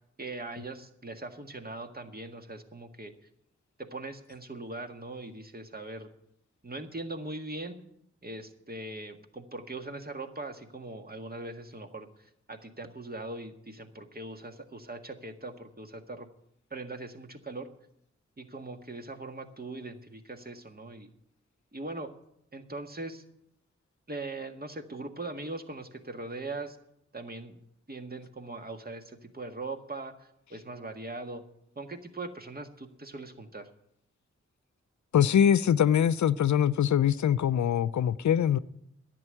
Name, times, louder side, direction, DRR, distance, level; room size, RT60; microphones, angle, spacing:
voice 1, 0.2-3.1 3.8-6.1 6.6-7.8 8.2-16.3 16.7-17.7 18.4-21.1 21.7-22.1 22.5-23.2 24.1-26.8 27.1-27.6 27.9-31.4 31.8-33.7, right 2 dB, 30° right, 1.7 m, -40 dB
voice 2, 35.1-38.6, left 9 dB, 75° left, 0.5 m, -23 dB
10.5 x 8.1 x 9.9 m
cardioid pair, 45°, 29 cm